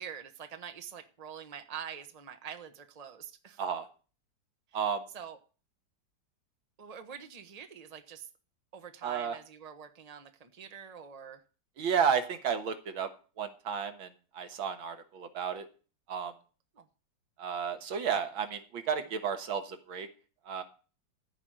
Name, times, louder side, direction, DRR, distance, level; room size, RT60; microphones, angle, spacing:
voice 1, 0.0-3.6 4.7-4.8 5.1-5.4 6.8-8.3 8.7-11.4 16.7-16.9, right 8 dB, 25° right, 8 dB, 1.1 m, -45 dB
voice 2, 9.0-9.3 11.8-13.1 13.4-14.1 14.3-15.7 16.1-16.3 17.4-20.1 20.5-20.6, right 7 dB, 80° right, 8 dB, 2.2 m, -32 dB
14.0 x 5.1 x 9.1 m, 0.36 s
omnidirectional pair, 2.2 m